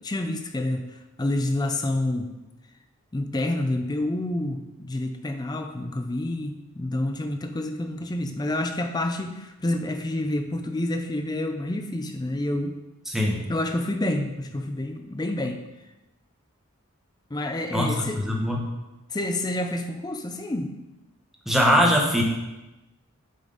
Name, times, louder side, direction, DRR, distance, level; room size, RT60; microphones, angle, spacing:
voice 1, 0.0-2.3 3.1-12.8 13.5-15.6 17.3-18.2 19.1-20.7, left 1 dB, 20° left, 6 dB, 0.4 m, -28 dB
voice 2, 13.1-13.5 17.7-18.7 21.5-22.2, equal, ahead, -1 dB, 0.9 m, -22 dB
7.4 x 5.1 x 3.9 m, 1.0 s
head